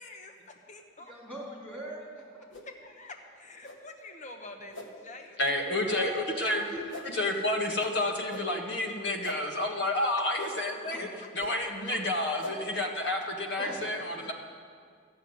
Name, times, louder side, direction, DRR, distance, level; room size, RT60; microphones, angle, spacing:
voice 1, 0.0-1.1 2.6-5.4 5.8-6.0, left 2 dB, 40° left, 4 dB, 1.0 m, -47 dB
voice 2, 1.0-2.5 5.8-7.2 10.9-11.0 12.5-12.6 13.6-14.3, equal, 5° left, -4 dB, 3.3 m, -42 dB
sound 1, 2.5-2.7 3.6-3.8 4.7-4.9 5.7-5.9 6.9-7.1 8.3-8.5 9.2-9.4 10.4-10.5 11.4-11.5 12.4-12.5, left 1 dB, 85° left, 1.5 m, -41 dB
voice 3, 5.4-6.6 7.1-11.1 11.3-14.3, left 1 dB, 60° left, 2 dB, 1.6 m, -30 dB
13.5 x 7.1 x 9.6 m, 2.1 s
head